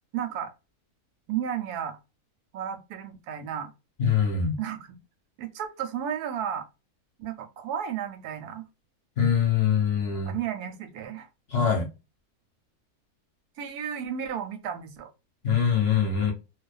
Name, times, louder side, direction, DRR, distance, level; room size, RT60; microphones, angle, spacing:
voice 1, 0.1-0.5 1.3-2.0 2.5-3.7 4.6-4.8 5.4-6.7 7.2-8.7 10.2-11.3 13.6-15.1, right 9 dB, 90° right, 1.1 m, -33 dB
voice 2, 4.0-4.6 9.2-10.3 11.5-11.9 15.4-16.3, left 7 dB, 55° left, 0.7 m, -23 dB
2.4 x 2.3 x 2.3 m
omnidirectional pair, 1.6 m